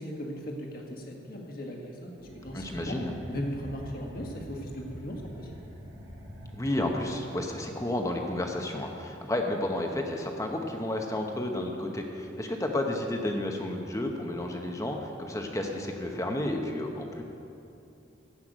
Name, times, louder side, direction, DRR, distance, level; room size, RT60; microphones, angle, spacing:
voice 1, 0.0-3.0 3.3-5.6, equal, 50° left, 0 dB, 1.8 m, -38 dB
sound 1, 2.2-7.4, equal, 70° right, 2.2 m, -45 dB
voice 2, 2.5-3.1 6.5-17.2, left 1 dB, 15° left, 2 dB, 1.0 m, -31 dB
15.0 x 5.8 x 9.0 m, 2.7 s
head